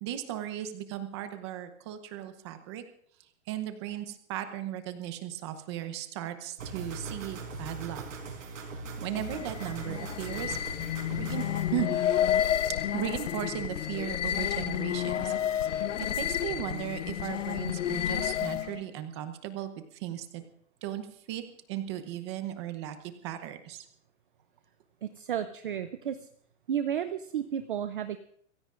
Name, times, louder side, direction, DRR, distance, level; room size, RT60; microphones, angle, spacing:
voice 1, 0.0-2.8 3.5-8.1 9.0-10.6 11.1-11.4 11.7-12.2 12.8-15.8 16.2-20.4 20.8-21.4 21.7-23.0 23.2-23.9, right 12 dB, 20° right, 9 dB, 0.8 m, -36 dB
sound 1, 6.6-11.7, right 3 dB, 70° right, 4.9 m, -40 dB
sound 2, 9.1-18.8, left 10 dB, 60° left, 0.8 m, -30 dB
voice 2, 25.0-26.2 26.7-28.2, right 9 dB, 40° right, 10 dB, 0.5 m, -32 dB
25.5 x 16.0 x 2.5 m, 0.64 s
hypercardioid pair, 175°, 41 cm